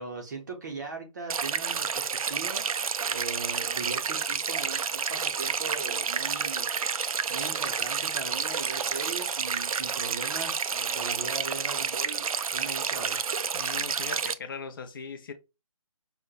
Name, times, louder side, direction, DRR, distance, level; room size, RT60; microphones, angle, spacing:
voice 1, 0.0-2.7 3.1-7.0 7.3-13.3, right 4 dB, 30° right, 0.6 m, -39 dB
sound 1, 1.3-14.3, right 6 dB, 80° right, 0.4 m, -30 dB
voice 2, 13.5-15.3, left 5 dB, 40° left, 0.6 m, -39 dB
5.3 x 2.1 x 2.3 m
figure-of-eight pair, 160°, 18 cm